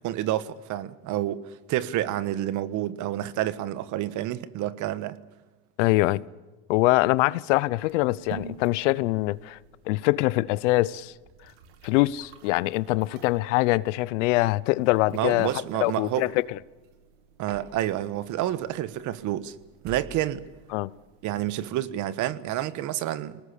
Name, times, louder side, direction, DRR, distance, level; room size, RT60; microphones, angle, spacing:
voice 1, 0.0-5.2 15.1-16.3 17.4-19.5 19.8-20.4 21.2-23.4, right 13 dB, 55° right, 1.4 m, -29 dB
voice 2, 5.8-6.2 6.7-9.6 9.9-11.1 11.8-15.5 15.8-16.6 20.7-20.9, left 19 dB, 85° left, 0.8 m, -23 dB
sound 1, 7.8-21.7, right 7 dB, 80° right, 2.7 m, -49 dB
23.0 x 19.5 x 8.5 m
supercardioid pair, 115°, 36 cm